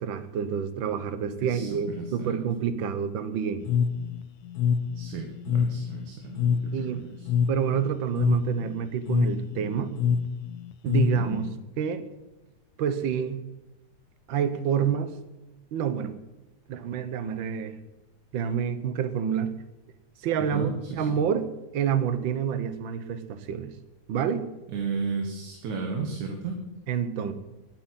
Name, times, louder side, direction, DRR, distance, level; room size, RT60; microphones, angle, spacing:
voice 1, 0.0-3.6 6.7-7.0 7.5-9.9 10.8-11.4 11.8-12.1 12.8-13.4 14.3-15.1 15.7-16.1 16.7-17.8 18.3-19.5 20.2-21.5 21.7-23.7 24.1-24.4 26.9-27.3, right 8 dB, 60° right, 12 dB, 1.3 m, -28 dB
voice 2, 2.0-2.3 4.9-7.3 11.2-11.5 20.5-21.2 24.7-26.6, right 5 dB, 80° right, 2 dB, 3.0 m, -34 dB
sound 1, 3.6-11.5, left 7 dB, 80° left, 2.1 m, -26 dB
11.5 x 9.0 x 9.7 m, 1.0 s
omnidirectional pair, 3.4 m